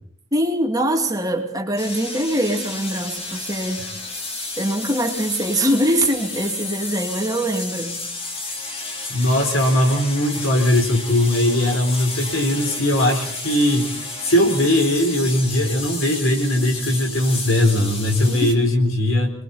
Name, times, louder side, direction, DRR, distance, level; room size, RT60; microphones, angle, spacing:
voice 1, 0.3-3.9 4.6-8.0 18.3-18.6, right 1 dB, 15° right, 1 dB, 2.7 m, -23 dB
sound 1, 1.8-18.5, left 3 dB, 25° left, 3.2 m, -32 dB
voice 2, 9.1-13.9 14.2-19.3, left 1 dB, 70° left, 3 dB, 4.2 m, -19 dB
29.5 x 22.0 x 4.4 m, 0.64 s
head